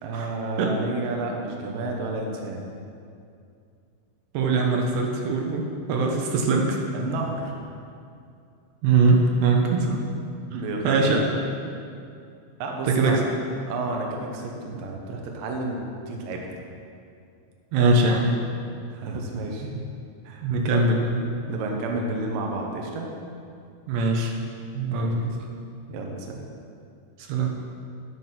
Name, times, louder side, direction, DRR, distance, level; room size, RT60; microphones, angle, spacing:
voice 1, 0.0-2.6 6.9-7.6 10.5-11.3 12.6-13.2 13.7-16.6 18.9-19.7 20.2-20.5 21.4-23.1 24.9-25.1 25.9-26.4, right 2 dB, 90° right, 0 dB, 1.9 m, -31 dB
voice 2, 4.3-6.8 8.8-10.0 10.8-11.2 12.8-13.2 17.7-18.3 19.6-19.8 20.4-21.3 23.9-24.3 24.7-25.4 27.2-27.5, right 3 dB, 70° right, 1 dB, 2.8 m, -22 dB
10.0 x 9.6 x 5.9 m, 2.4 s
omnidirectional pair, 5.9 m